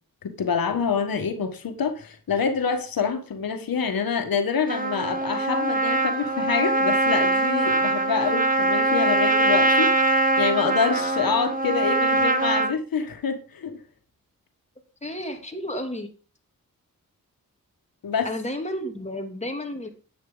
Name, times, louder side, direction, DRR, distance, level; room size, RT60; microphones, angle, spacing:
voice 1, 0.2-13.8 18.0-18.3, left 6 dB, 85° left, 1.6 m, -26 dB
Trumpet, 4.7-12.7, right 2 dB, 25° right, 1.8 m, -22 dB
voice 2, 15.0-16.1 18.2-19.9, left 1 dB, 20° left, 2.9 m, -32 dB
10.5 x 9.3 x 3.9 m
cardioid pair, 65°, 34 cm